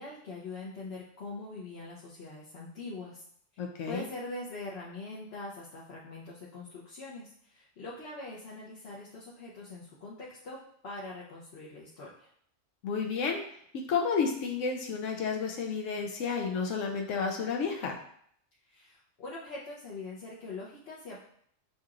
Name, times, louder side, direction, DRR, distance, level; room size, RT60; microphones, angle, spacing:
voice 1, 0.0-3.2 3.5-12.3 18.7-21.2, left 2 dB, 60° left, -6 dB, 0.9 m, -43 dB
voice 2, 3.6-4.0 12.8-13.4 13.9-18.0, left 5 dB, 85° left, 1 dB, 1.0 m, -31 dB
6.5 x 2.9 x 2.4 m, 0.66 s
omnidirectional pair, 1.3 m